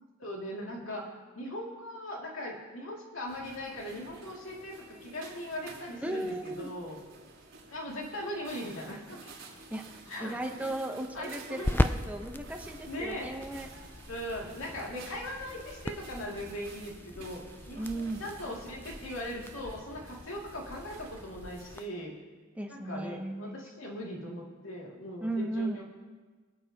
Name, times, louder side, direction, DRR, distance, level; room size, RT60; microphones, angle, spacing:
voice 1, 0.2-7.0 7.7-9.3 10.1-10.3 11.1-11.7 12.9-13.3 14.1-17.4 17.7-17.8 18.2-22.1 22.7-25.8, left 1 dB, 80° left, -2 dB, 2.5 m, -39 dB
sound 1, 3.3-21.9, right 3 dB, 65° right, 3.7 m, -51 dB
voice 2, 6.0-6.7 9.7-13.7 17.7-18.2 22.6-23.6 25.2-25.8, right 2 dB, 5° right, 3 dB, 0.8 m, -36 dB
sound 2, 9.6-21.8, left 1 dB, 10° left, 0.3 m, -38 dB
25.0 x 8.8 x 2.9 m, 1.4 s
head